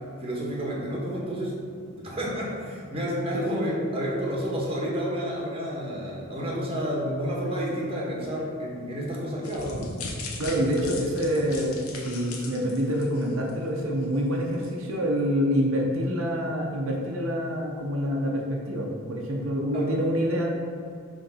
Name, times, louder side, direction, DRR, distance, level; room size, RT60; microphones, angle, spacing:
voice 1, 0.2-9.9 19.7-19.9, equal, 25° right, -3 dB, 1.4 m, -30 dB
voice 2, 3.3-3.7 10.4-20.4, equal, 70° right, -2 dB, 0.8 m, -26 dB
sound 1, 9.4-13.7 14.0-14.2 14.6-14.7, left 2 dB, 90° left, 1.0 m, -38 dB
6.6 x 3.5 x 5.6 m, 2.3 s
head